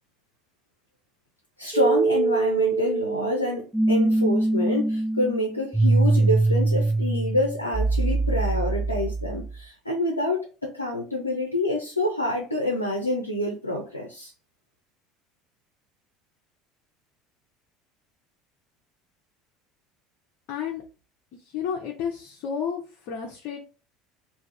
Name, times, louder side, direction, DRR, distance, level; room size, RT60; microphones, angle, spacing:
voice 1, 1.6-14.3, left 1 dB, 90° left, 0.6 m, -27 dB
sound 1, 1.7-9.6, right 2 dB, 5° right, 0.3 m, -23 dB
voice 2, 20.5-20.8 21.4-23.6, left 7 dB, 55° left, 0.7 m, -31 dB
3.5 x 2.8 x 3.3 m
figure-of-eight pair, 65°, 0 cm